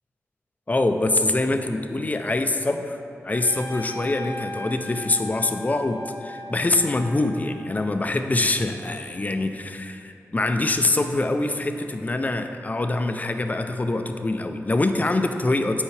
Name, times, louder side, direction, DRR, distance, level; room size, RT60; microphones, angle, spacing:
voice 1, 0.7-3.0 3.2-15.8, left 2 dB, 30° left, 7 dB, 0.5 m, -24 dB
Trumpet, 3.3-8.0, left 2 dB, 80° left, 0.8 m, -38 dB
8.3 x 4.7 x 3.3 m, 2.8 s
cardioid pair, 55°, 5 cm